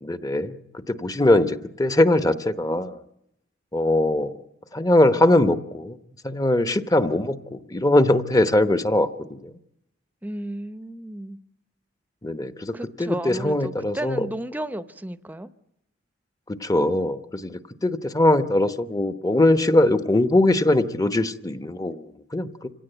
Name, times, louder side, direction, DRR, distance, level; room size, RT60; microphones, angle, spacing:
voice 1, 0.0-3.0 3.7-4.3 4.7-6.0 6.2-9.5 12.2-14.3 16.5-22.7, left 1 dB, 20° left, 1.0 m, -21 dB
voice 2, 10.2-11.4 12.7-15.5, right 1 dB, 10° right, 0.8 m, -33 dB
27.0 x 17.0 x 9.2 m
head